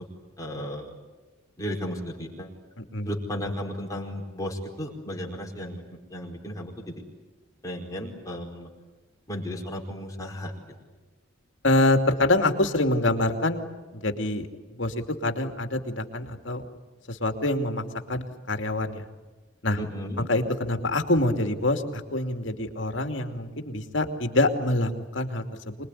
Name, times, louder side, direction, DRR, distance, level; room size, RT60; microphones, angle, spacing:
voice 1, 0.4-0.9 1.6-2.5 3.0-5.8 6.1-6.9 7.6-8.7 9.3-10.5 19.8-20.3, equal, 15° left, 0 dB, 4.6 m, -34 dB
voice 2, 2.8-3.1 11.6-13.7 13.9-14.5 14.8-16.6 17.1-19.0 19.6-19.8 20.2-25.8, left 2 dB, 65° left, 6 dB, 2.7 m, -26 dB
26.0 x 21.5 x 9.9 m, 1.2 s
head